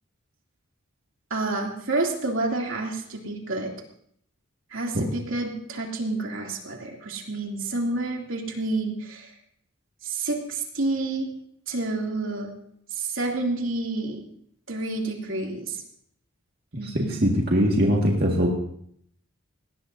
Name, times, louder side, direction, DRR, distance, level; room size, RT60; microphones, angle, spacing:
voice 1, 1.3-3.7 4.7-9.3 10.0-11.3 11.7-12.5 12.9-14.2 14.7-15.8 16.8-17.1, right 2 dB, 70° right, 0 dB, 2.8 m, -29 dB
voice 2, 16.8-18.5, equal, 50° right, -1 dB, 1.9 m, -22 dB
20.0 x 17.5 x 2.7 m, 0.68 s
head